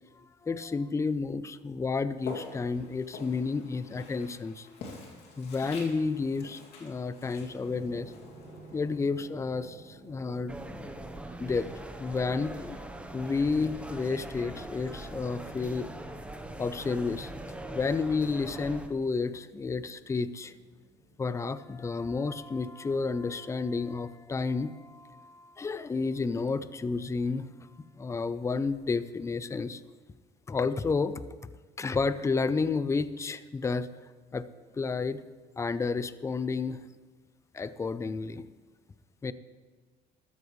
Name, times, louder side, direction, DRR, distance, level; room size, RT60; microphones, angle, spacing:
voice 1, 0.4-4.7 5.4-8.1 8.7-10.9 11.4-11.7 12.0-12.8 13.1-15.9 16.6-17.3 17.7-20.5 21.2-27.5 28.0-29.8 30.5-31.2 31.8-33.9 34.3-34.5 34.7-35.2 35.6-36.8 37.5-38.4 39.2-39.3, left 4 dB, 15° left, 15 dB, 0.4 m, -31 dB
Walk footsteps, 2.2-9.3, left 4 dB, 80° left, 2.4 m, -47 dB
sound 1, 7.4-21.3, right 2 dB, 25° right, 2.9 m, -54 dB
sound 2, 10.5-18.9, right 1 dB, 5° right, 0.8 m, -42 dB
13.5 x 13.0 x 3.2 m, 1.4 s
cardioid pair, 110°, 17 cm